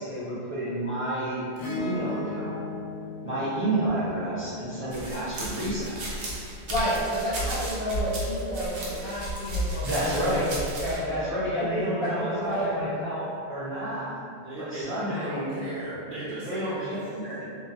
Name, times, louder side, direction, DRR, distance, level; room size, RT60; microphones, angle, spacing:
voice 1, 0.0-1.4 1.7-2.6 3.2-6.0 9.8-10.5 11.1-14.1 14.6-15.5 16.4-17.4, right 1 dB, 15° left, -12 dB, 0.7 m, -30 dB
Acoustic guitar / Strum, 1.6-6.2 8.0-8.1, left 3 dB, 65° left, 0.8 m, -37 dB
sound 1, 4.9-11.0, right 1 dB, 85° right, 0.9 m, -33 dB
voice 2, 6.7-10.1 10.8-11.0 11.5-12.9, equal, 45° left, -10 dB, 0.4 m, -30 dB
voice 3, 14.3-17.1, right 1 dB, 60° right, -9 dB, 0.6 m, -36 dB
2.3 x 2.2 x 2.7 m, 2.4 s
omnidirectional pair, 1.1 m